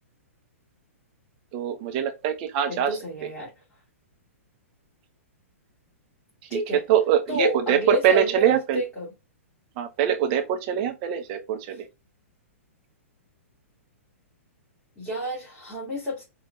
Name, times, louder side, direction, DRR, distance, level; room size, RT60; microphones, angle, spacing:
voice 1, 1.5-3.0 6.4-6.6 6.9-8.8 9.8-11.8, right 9 dB, 40° right, 1.0 m, -23 dB
voice 2, 2.7-3.5 6.5-6.8 7.3-9.1 15.0-16.2, equal, 10° left, 2.8 m, -29 dB
5.4 x 3.5 x 2.4 m
hypercardioid pair, 115°, 8 cm